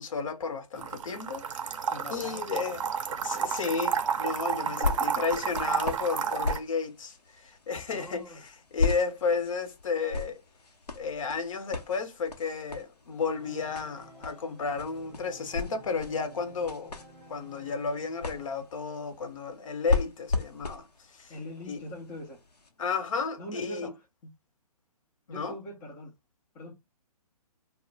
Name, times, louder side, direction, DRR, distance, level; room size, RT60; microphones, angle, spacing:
voice 1, 0.0-1.8 2.1-2.8 3.2-8.4 8.7-10.4 10.9-17.0 17.3-20.9 21.1-21.3 21.7-21.8 22.8-23.9 25.3-25.5, left 5 dB, 55° left, 0.7 m, -33 dB
sound 1, 0.8-6.6, right 7 dB, 55° right, 0.5 m, -31 dB
voice 2, 1.9-2.6 4.6-5.2 7.9-8.4 21.3-22.4 23.4-24.3 25.3-26.1 26.5-26.7, left 1 dB, 10° left, 0.3 m, -42 dB
sound 2, 3.9-22.7 23.4-23.5, left 4 dB, 90° left, 0.7 m, -36 dB
Organ, 13.2-18.9, right 1 dB, 15° right, 0.7 m, -52 dB
2.1 x 2.1 x 3.8 m
figure-of-eight pair, 135°, 20 cm